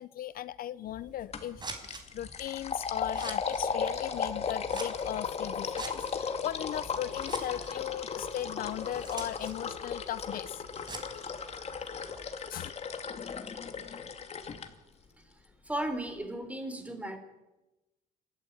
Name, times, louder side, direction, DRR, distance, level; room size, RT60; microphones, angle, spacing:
voice 1, 0.0-10.7 11.1-11.3 11.9-12.1 12.5-12.7, left 12 dB, 60° left, 17 dB, 0.7 m, -38 dB
Scissors, 0.8-12.3, right 3 dB, 25° right, 4.9 m, -47 dB
sound 1, 1.3-1.5 1.8-14.7, left 6 dB, 40° left, 2.4 m, -36 dB
voice 2, 15.7-17.2, right 1 dB, 10° right, 7 dB, 4.3 m, -35 dB
26.0 x 13.5 x 9.9 m, 1.1 s
cardioid pair, 110°, 17 cm